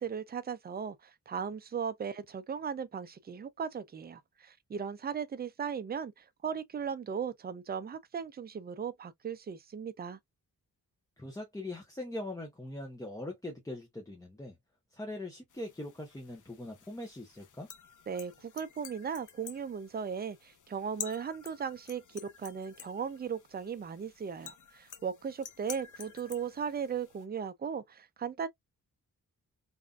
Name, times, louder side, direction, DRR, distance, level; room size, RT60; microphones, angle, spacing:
voice 1, 0.0-10.2 18.1-28.5, right 7 dB, 30° right, 0.4 m, -37 dB
voice 2, 11.2-14.6 14.9-17.7, left 1 dB, 10° left, 0.7 m, -41 dB
sound 1, 15.5-27.2, left 8 dB, 60° left, 0.6 m, -50 dB
3.6 x 2.5 x 2.2 m
wide cardioid pair, 160°, 35 cm